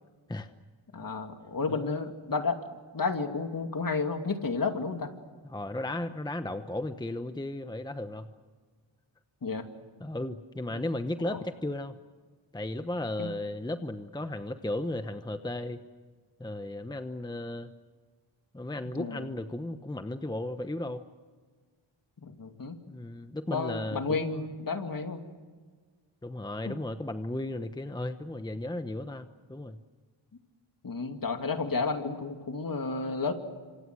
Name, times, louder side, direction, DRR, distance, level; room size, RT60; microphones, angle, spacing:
voice 1, 0.9-2.6 2.9-5.1 9.4-9.7 10.7-10.8 11.2-11.4 13.2-13.4 18.8-19.3 22.2-22.8 23.5-25.2 26.7-26.8 30.8-33.3, left 4 dB, 45° left, 5 dB, 2.7 m, -32 dB
voice 2, 1.7-2.0 5.4-8.3 10.0-11.9 12.5-15.8 16.4-17.7 18.5-21.0 22.9-24.4 26.2-29.8, left 1 dB, 10° left, 9 dB, 1.0 m, -35 dB
28.0 x 26.5 x 6.3 m, 1.5 s
wide cardioid pair, 90°, 47 cm